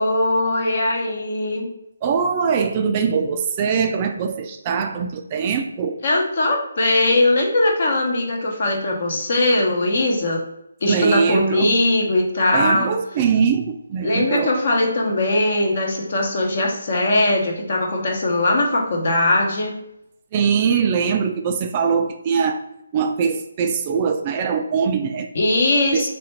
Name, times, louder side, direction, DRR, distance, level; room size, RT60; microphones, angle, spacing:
voice 1, 0.0-1.7 6.0-10.4 10.8-12.9 14.0-19.8 25.3-26.1, left 2 dB, 50° left, 1 dB, 1.0 m, -20 dB
voice 2, 2.0-6.0 10.9-11.7 12.5-14.5 20.3-22.6 22.9-25.3 25.9-26.1, right 6 dB, 25° right, 5 dB, 0.3 m, -22 dB
3.3 x 2.4 x 4.3 m, 0.80 s
figure-of-eight pair, 155°, 0 cm